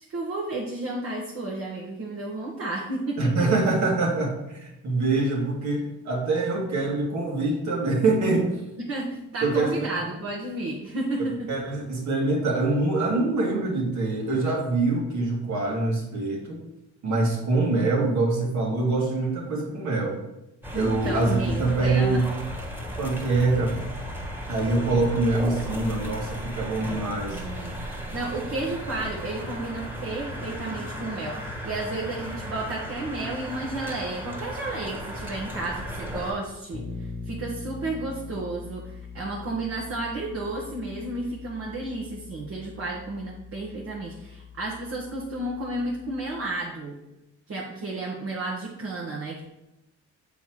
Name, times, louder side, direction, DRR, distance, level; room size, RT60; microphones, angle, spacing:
voice 1, 0.1-3.5 8.8-11.5 20.7-22.2 27.3-27.7 28.1-46.9 47.5-49.4, right 2 dB, 55° right, -4 dB, 1.5 m, -32 dB
voice 2, 3.2-8.6 9.4-10.1 11.5-16.6 17.0-20.2 20.7-22.3 23.0-23.8 24.5-27.4, right 2 dB, 70° right, -1 dB, 2.0 m, -24 dB
sound 1, 20.6-36.3, equal, 5° right, 1.6 m, -35 dB
Bass guitar, 36.7-46.5, left 5 dB, 25° left, 0.8 m, -42 dB
7.0 x 4.2 x 4.6 m, 0.92 s
cardioid pair, 90°, 30 cm